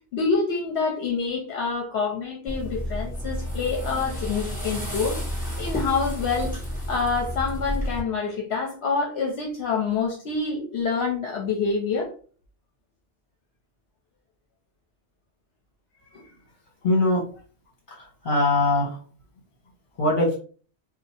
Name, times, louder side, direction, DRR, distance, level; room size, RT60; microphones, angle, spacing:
voice 1, 0.1-5.2 5.6-6.5 6.9-12.1 16.1-16.2, left 4 dB, 70° left, 0 dB, 1.0 m, -27 dB
sound 1, 2.5-8.0, equal, 5° left, 1.2 m, -31 dB
voice 2, 16.8-17.2 18.0-19.0 20.0-20.4, left 2 dB, 50° left, 0 dB, 1.4 m, -21 dB
2.8 x 2.3 x 4.2 m, 0.40 s
omnidirectional pair, 1.2 m